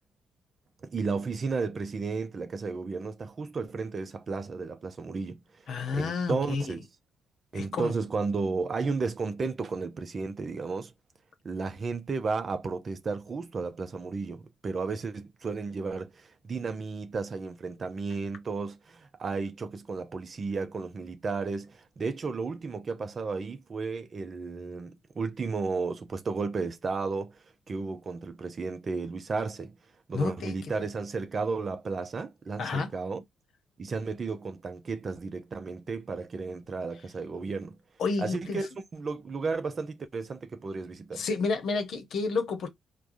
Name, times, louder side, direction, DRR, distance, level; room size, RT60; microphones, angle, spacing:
voice 1, 0.8-6.9 7.5-10.9 11.4-29.8 30.1-33.2 33.8-37.8 38.2-41.3, right 4 dB, 45° right, 0.6 m, -33 dB
voice 2, 5.7-6.6 7.5-7.9 30.1-30.8 32.6-32.9 38.0-38.6 41.2-42.7, left 4 dB, 60° left, 0.9 m, -30 dB
4.6 x 2.2 x 2.6 m
hypercardioid pair, 45°, 0 cm